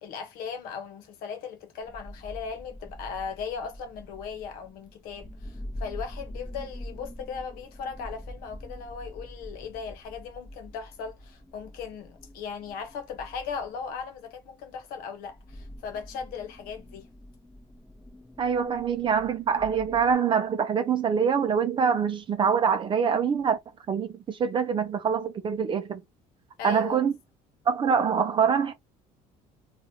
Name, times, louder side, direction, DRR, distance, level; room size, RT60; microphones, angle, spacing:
voice 1, 0.0-17.1 26.6-27.0, left 6 dB, 80° left, 1.0 m, -38 dB
sound 1, 1.8-20.1, equal, 10° left, 0.8 m, -45 dB
voice 2, 18.4-23.6 23.9-26.0 26.6-27.1 27.7-28.7, right 7 dB, 35° right, 0.5 m, -24 dB
2.9 x 2.4 x 2.8 m
cardioid pair, 125°, 15 cm